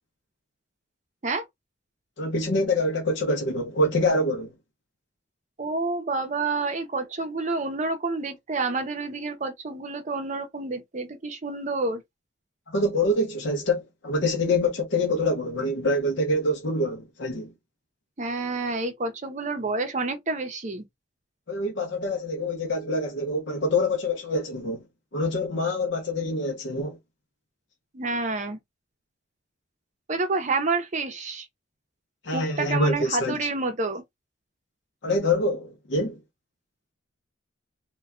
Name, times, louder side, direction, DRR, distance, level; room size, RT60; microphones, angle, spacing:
voice 1, 2.2-4.5 12.7-17.5 21.5-24.8 25.1-27.0 32.2-33.4 35.0-36.2, left 1 dB, 60° left, 0.6 m, -25 dB
voice 2, 5.6-12.0 18.2-20.8 27.9-28.6 30.1-31.5 32.3-34.0, right 3 dB, 35° right, 0.6 m, -29 dB
2.2 x 2.2 x 3.5 m
head